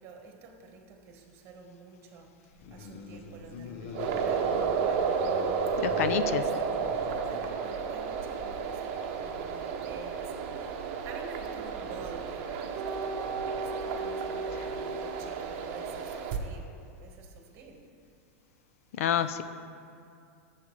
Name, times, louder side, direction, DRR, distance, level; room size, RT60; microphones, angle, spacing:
voice 1, 0.0-17.8, right 4 dB, 35° right, 2 dB, 1.4 m, -49 dB
sound 1, 2.5-7.6, left 4 dB, 55° left, 0.8 m, -42 dB
sound 2, 3.9-16.4, right 6 dB, 50° right, 0.8 m, -32 dB
voice 2, 5.8-6.4 19.0-19.4, left 10 dB, 75° left, 12 dB, 0.4 m, -27 dB
13.0 x 7.3 x 3.2 m, 2.5 s
supercardioid pair, 145°, 8 cm